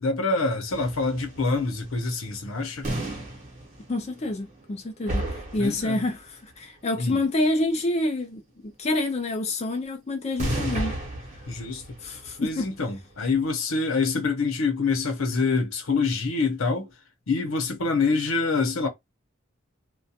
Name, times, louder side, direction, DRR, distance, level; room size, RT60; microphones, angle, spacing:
voice 1, 0.0-2.9 5.6-6.0 7.0-7.2 11.5-11.8 12.4-16.9 17.3-18.9, left 4 dB, 80° left, 0.8 m, -26 dB
sound 1, 0.7-4.8 5.0-6.2 10.3-13.4, right 1 dB, 35° right, 0.9 m, -33 dB
voice 2, 3.9-11.0 12.0-12.7, left 2 dB, 30° left, 0.4 m, -28 dB
2.4 x 2.2 x 2.7 m
head